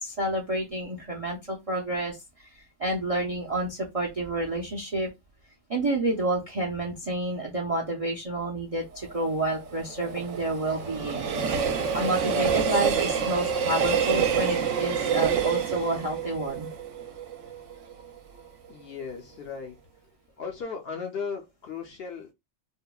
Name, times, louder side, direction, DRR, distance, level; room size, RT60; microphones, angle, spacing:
voice 1, 0.0-2.2 2.8-5.1 5.7-11.3 11.9-16.7, right 1 dB, 45° right, 0.4 m, -29 dB
Train, 8.9-18.0 18.4-18.5, right 6 dB, 75° right, 0.9 m, -27 dB
voice 2, 18.7-19.8 20.4-22.3, left 5 dB, 60° left, 0.8 m, -36 dB
3.5 x 2.0 x 2.3 m
omnidirectional pair, 1.3 m